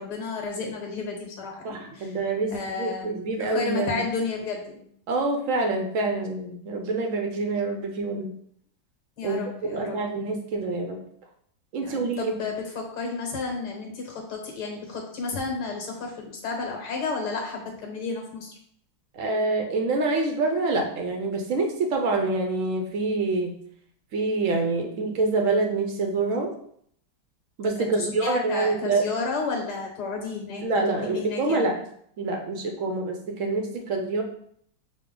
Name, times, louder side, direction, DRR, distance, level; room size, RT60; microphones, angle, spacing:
voice 1, 0.0-2.2 2.5-3.1 3.4-4.8 9.2-10.0 11.8-18.5 27.8-30.6 31.0-31.7, left 4 dB, 65° left, 1 dB, 1.6 m, -32 dB
voice 2, 1.6-4.0 5.1-8.3 9.2-11.0 11.7-12.3 19.1-23.5 24.1-26.5 27.6-29.1 30.6-31.8 32.2-34.2, right 3 dB, 70° right, 3 dB, 0.7 m, -26 dB
6.4 x 2.2 x 3.7 m, 0.66 s
omnidirectional pair, 1.9 m